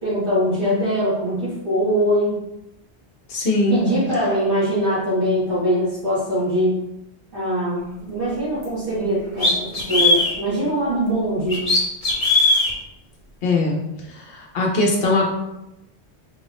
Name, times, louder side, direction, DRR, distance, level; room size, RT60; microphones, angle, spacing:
voice 1, 0.0-2.4 3.7-6.8 7.3-11.8, equal, 50° right, -14 dB, 1.8 m, -22 dB
voice 2, 3.3-3.8 13.4-13.8 14.3-15.3, left 2 dB, 65° left, -1 dB, 1.0 m, -20 dB
sound 1, 8.6-8.7 9.4-10.3 11.5-12.7, left 2 dB, 35° left, 1.0 m, -18 dB
4.3 x 2.6 x 3.4 m, 0.91 s
omnidirectional pair, 1.1 m